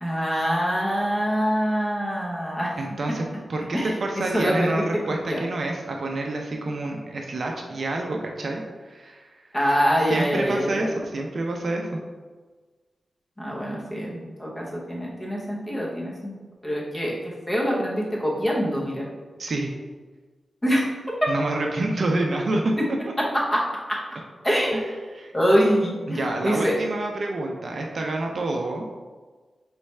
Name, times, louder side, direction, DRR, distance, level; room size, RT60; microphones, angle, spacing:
voice 1, 0.0-2.7 3.7-3.9 4.3-4.8 5.3-5.4 9.5-10.8 13.4-16.3 16.6-17.1 17.5-19.1 20.6-21.3 23.2-24.0 24.4-25.0 25.3-26.7, equal, 15° left, -4 dB, 0.9 m, -24 dB
voice 2, 2.8-3.2 3.5-9.3 10.1-12.0 19.4-19.7 21.3-22.7 23.1-23.2 24.7-25.3 26.1-28.9, right 2 dB, 50° right, 1 dB, 0.4 m, -28 dB
4.5 x 3.2 x 3.2 m, 1.4 s
wide cardioid pair, 150°, 0 cm